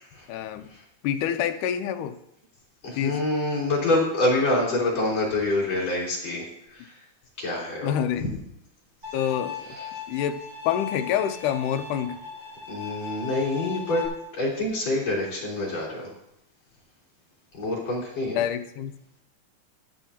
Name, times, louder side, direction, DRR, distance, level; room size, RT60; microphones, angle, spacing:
voice 1, 0.3-0.7 1.0-2.2 3.0-3.2 7.8-8.2 9.1-9.6 10.1-12.2 18.4-18.9, left 9 dB, 80° left, 8 dB, 2.2 m, -27 dB
voice 2, 2.8-7.0 7.4-8.4 9.6-10.0 12.7-14.0 14.3-16.1 17.5-18.4, left 2 dB, 50° left, -5 dB, 4.8 m, -26 dB
Bowed string instrument, 9.0-14.1, left 7 dB, 40° right, 5.3 m, -37 dB
13.5 x 12.5 x 2.8 m, 0.80 s
omnidirectional pair, 3.8 m